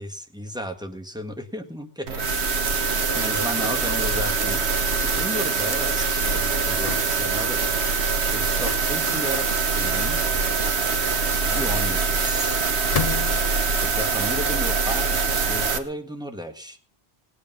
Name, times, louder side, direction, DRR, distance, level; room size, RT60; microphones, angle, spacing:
voice 1, 0.0-2.2 2.5-4.7 5.0-7.7 8.3-10.2 11.4-12.6 13.8-15.2 15.4-16.8, equal, 5° right, 5 dB, 1.6 m, -34 dB
sound 1, 2.1-15.8, right 4 dB, 85° right, 1.5 m, -23 dB
sound 2, 6.9-7.3 8.7-9.0 10.1-10.7 11.6-12.3 12.9-13.6, left 7 dB, 40° left, 0.7 m, -32 dB
19.5 x 8.5 x 5.4 m, 0.41 s
omnidirectional pair, 1.1 m